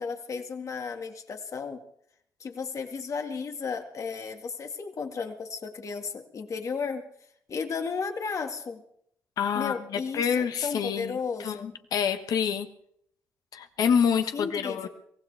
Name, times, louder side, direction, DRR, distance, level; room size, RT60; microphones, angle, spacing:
voice 1, 0.0-1.8 2.4-7.0 7.5-8.8 9.5-11.7 14.3-14.9, left 5 dB, 55° left, 5 dB, 2.1 m, -34 dB
voice 2, 9.4-12.7 13.5-14.9, left 7 dB, 75° left, 8 dB, 1.3 m, -27 dB
23.0 x 16.0 x 3.5 m, 0.70 s
supercardioid pair, 65°, 7 cm